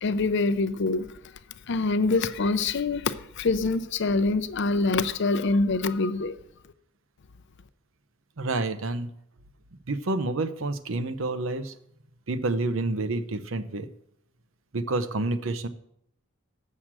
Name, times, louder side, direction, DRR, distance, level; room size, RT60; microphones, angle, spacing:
voice 1, 0.0-1.1 1.7-6.4, left 3 dB, 60° left, 0.6 m, -25 dB
voice 2, 8.4-9.1 9.9-11.7 12.3-13.9 14.7-15.7, right 2 dB, 70° right, 0.7 m, -28 dB
7.5 x 6.5 x 7.3 m
head